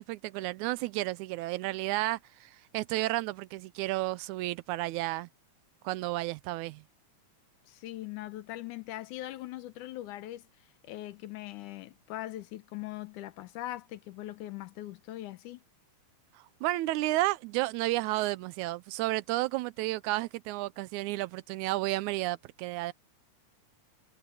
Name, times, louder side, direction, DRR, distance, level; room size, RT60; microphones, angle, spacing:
voice 1, 0.0-5.3 5.8-6.8 16.6-22.9, right 18 dB, 80° right, 1.9 m, -32 dB
voice 2, 7.7-10.4 10.8-15.6, left 15 dB, 85° left, 2.4 m, -41 dB
omnidirectional pair, 3.4 m